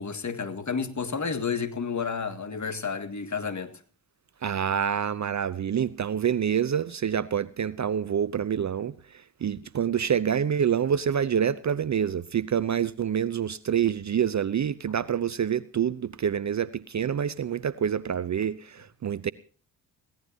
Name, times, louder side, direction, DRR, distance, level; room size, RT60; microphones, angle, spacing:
voice 1, 0.0-3.7, left 5 dB, 35° left, 1.8 m, -31 dB
voice 2, 4.4-8.9 9.4-19.3, right 8 dB, 35° right, 0.6 m, -27 dB
21.5 x 16.5 x 2.8 m
hypercardioid pair, 45°, 48 cm